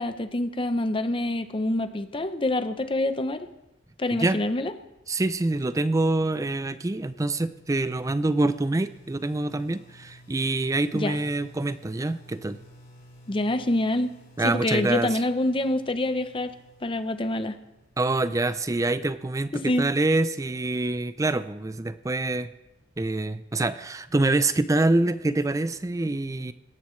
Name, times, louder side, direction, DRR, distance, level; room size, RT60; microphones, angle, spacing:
voice 1, 0.0-3.5 4.0-4.7 10.9-11.2 13.3-14.1 14.4-16.5 16.8-17.6 19.5-19.9, left 1 dB, 25° left, 10 dB, 0.6 m, -26 dB
voice 2, 5.1-12.6 14.4-15.1 18.0-22.5 23.0-26.5, right 2 dB, 15° right, 13 dB, 0.4 m, -25 dB
sound 1, 6.6-18.2, equal, 50° left, 5.4 m, -53 dB
18.5 x 13.5 x 3.2 m, 0.94 s
head